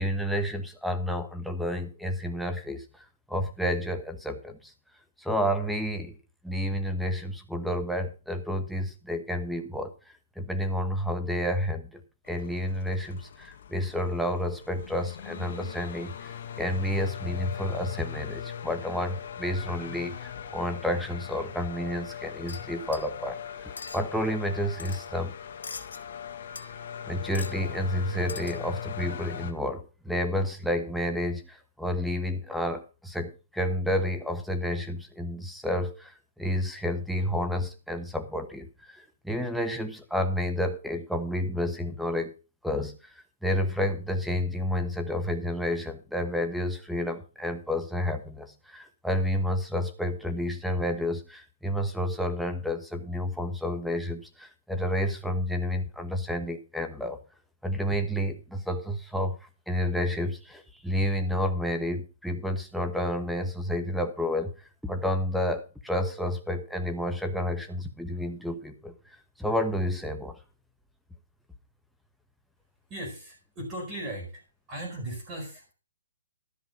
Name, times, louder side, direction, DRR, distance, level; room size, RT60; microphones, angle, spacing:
voice 1, 0.0-4.7 5.2-6.2 6.4-25.3 27.0-42.3 42.6-57.2 57.6-64.5 64.8-70.4, left 1 dB, ahead, 7 dB, 1.2 m, -30 dB
sound 1, 12.3-29.5, left 8 dB, 50° left, 1.8 m, -40 dB
sound 2, 22.5-23.2 23.8-24.0 24.8-25.1 25.6-26.0 26.6-27.0 27.3-27.6 28.3-28.7, left 4 dB, 85° left, 2.3 m, -42 dB
voice 2, 72.9-74.4 74.7-75.7, right 1 dB, 20° right, 1 dB, 4.9 m, -37 dB
13.5 x 6.0 x 5.8 m, 0.32 s
hypercardioid pair, 160°, 0 cm